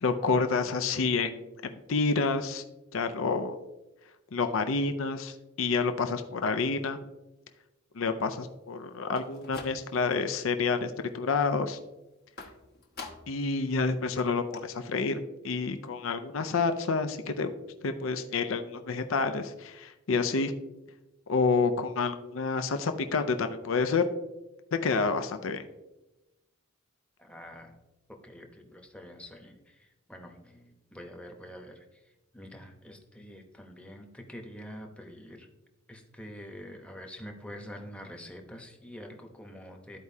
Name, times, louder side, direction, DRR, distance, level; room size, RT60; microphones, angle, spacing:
voice 1, 0.0-2.6 2.9-3.6 4.3-7.0 8.0-11.8 13.3-15.2 15.4-20.5 21.3-24.0 24.7-25.6, left 4 dB, 70° left, 8 dB, 0.5 m, -29 dB
sound 1, 9.0-10.2 10.6-11.1 12.4-13.5 13.8-13.9 14.2-14.3 14.5-14.6, left 4 dB, 50° left, 1.1 m, -46 dB
voice 2, 27.2-27.8 28.1-32.0 32.3-35.5 35.9-40.0, equal, 5° left, 2 dB, 0.9 m, -46 dB
13.0 x 4.7 x 2.7 m, 1.0 s
head